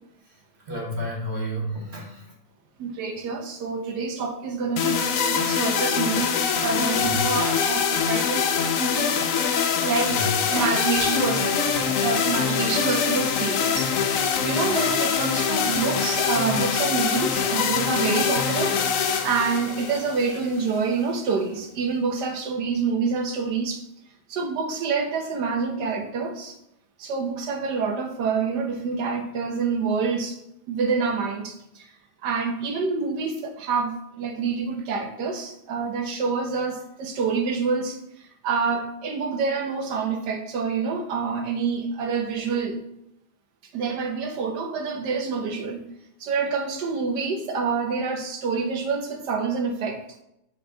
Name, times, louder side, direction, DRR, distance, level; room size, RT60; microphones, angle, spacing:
voice 1, 0.2-2.4 7.0-7.2 9.5-9.6 10.1-10.4, equal, 40° right, -2 dB, 1.5 m, -32 dB
voice 2, 2.8-5.0 5.3-9.1 9.8-10.1 10.5-18.8 19.2-23.8 24.3-26.5 27.0-30.4 30.7-31.9 32.2-42.8 43.7-45.8 46.2-50.0, right 5 dB, 80° right, 4 dB, 1.5 m, -27 dB
sound 1, 4.8-20.8, left 6 dB, 65° left, 0.9 m, -24 dB
6.8 x 4.1 x 3.8 m, 0.82 s
omnidirectional pair, 1.8 m